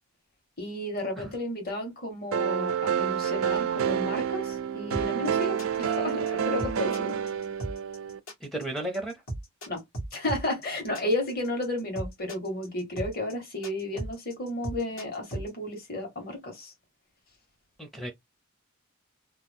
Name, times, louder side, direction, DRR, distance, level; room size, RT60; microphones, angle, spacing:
voice 1, 0.6-7.2 9.7-9.8 10.1-16.7, left 1 dB, 45° left, 1.5 m, -33 dB
sound 1, 2.3-8.2, right 8 dB, 70° right, 0.4 m, -28 dB
sound 2, 4.9-15.5, right 1 dB, 80° left, 1.7 m, -36 dB
voice 2, 8.4-9.1 17.8-18.1, right 1 dB, ahead, 0.5 m, -33 dB
2.9 x 2.2 x 3.5 m
head